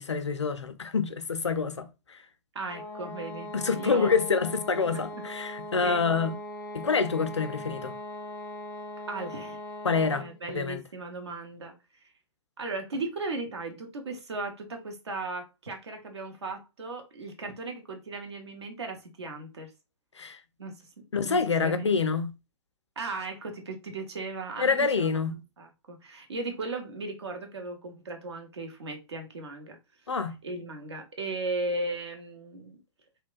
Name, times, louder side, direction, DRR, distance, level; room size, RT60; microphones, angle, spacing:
voice 1, 0.0-2.2 3.5-6.4 6.7-7.9 9.8-10.2 10.5-10.8 20.2-20.4 21.1-22.3 24.6-25.4 30.1-30.3, left 5 dB, 85° left, 0.4 m, -27 dB
voice 2, 2.5-4.3 4.9-5.0 5.8-6.0 9.1-9.6 10.2-11.7 12.6-19.7 20.6-22.0 23.0-29.8 30.4-32.8, right 2 dB, 70° right, 0.8 m, -37 dB
sound 1, 2.7-10.4, left 1 dB, 10° left, 0.4 m, -40 dB
2.9 x 2.1 x 2.3 m
figure-of-eight pair, 110°, 14 cm